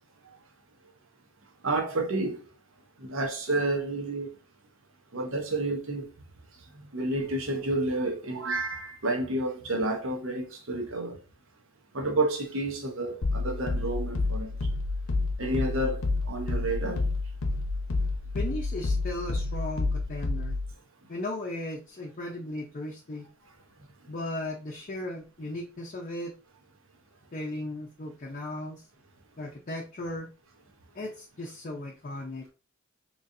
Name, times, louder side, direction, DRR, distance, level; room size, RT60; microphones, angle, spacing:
voice 1, 1.6-2.4 3.0-4.3 5.1-6.0 6.9-11.2 11.9-14.5 15.4-17.0, right 2 dB, 65° right, 1.0 m, -30 dB
sound 1, 13.2-20.7, left 3 dB, 90° left, 0.7 m, -29 dB
voice 2, 18.3-20.6 21.1-23.3 24.1-26.3 27.3-28.8 29.4-30.3 30.9-32.5, left 1 dB, 40° left, 0.5 m, -36 dB
3.9 x 3.0 x 2.6 m
head